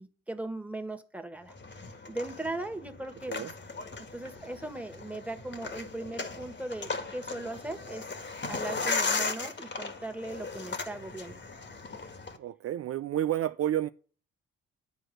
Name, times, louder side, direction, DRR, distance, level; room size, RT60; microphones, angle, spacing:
voice 1, 0.0-3.5 4.0-8.1 8.5-11.4, right 2 dB, 5° right, 1.7 m, -39 dB
sound 1, 1.5-12.4, left 3 dB, 40° left, 1.7 m, -37 dB
voice 2, 12.4-13.9, right 12 dB, 50° right, 0.5 m, -30 dB
11.0 x 4.6 x 7.8 m
hypercardioid pair, 45°, 30 cm